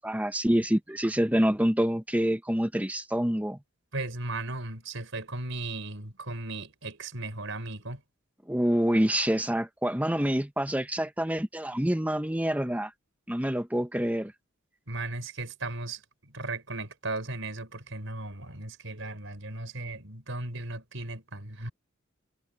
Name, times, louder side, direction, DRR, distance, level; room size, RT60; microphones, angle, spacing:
voice 1, 0.0-3.6 8.5-12.9 13.3-14.3, equal, 5° right, 1.2 m, -26 dB
voice 2, 3.9-8.0 14.9-21.7, right 2 dB, 70° right, 5.4 m, -36 dB
head